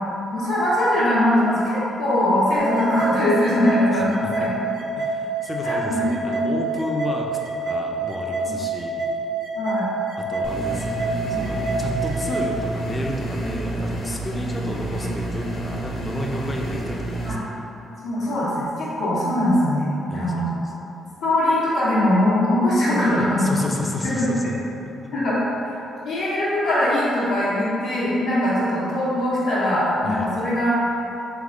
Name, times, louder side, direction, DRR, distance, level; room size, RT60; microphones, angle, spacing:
voice 1, 0.3-4.5 5.6-6.0 6.3-6.5 9.6-9.9 11.3-11.5 14.6-14.7 17.2-17.4 18.0-20.5 21.2-23.5 24.0-24.3 25.1-25.4 25.6-25.8 26.0-30.7, left 1 dB, 85° left, -13 dB, 1.0 m, -21 dB
sound 1, 2.6-12.6, right 3 dB, 70° right, 0.7 m, -27 dB
voice 2, 3.9-4.3 5.0-7.3 7.7-9.0 10.3-17.6 20.1-20.7 21.0-21.1 23.4-24.6 24.9-25.1 30.0-30.3, left 1 dB, 20° left, -1 dB, 0.5 m, -32 dB
sound 2, 10.4-17.3, right 2 dB, 65° left, 0.9 m, -29 dB
3.5 x 3.3 x 3.7 m, 2.9 s
cardioid pair, 90°, 0 cm